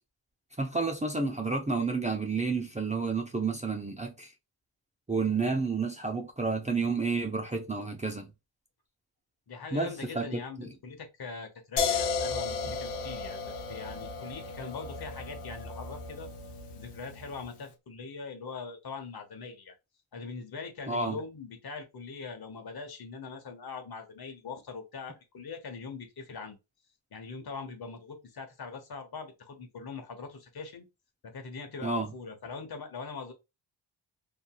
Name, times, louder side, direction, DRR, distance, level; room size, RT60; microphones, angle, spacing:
voice 1, 0.6-4.3 5.1-8.3 9.7-10.4 20.9-21.2 31.8-32.1, right 4 dB, 15° right, 0.6 m, -30 dB
voice 2, 9.5-13.4 13.7-16.3 16.7-19.8 20.1-26.6 27.1-30.9 31.2-33.3, left 4 dB, 50° left, 1.0 m, -42 dB
sound 1, 11.8-17.6, left 5 dB, 85° left, 0.8 m, -34 dB
2.7 x 2.7 x 2.3 m
supercardioid pair, 55°, 49 cm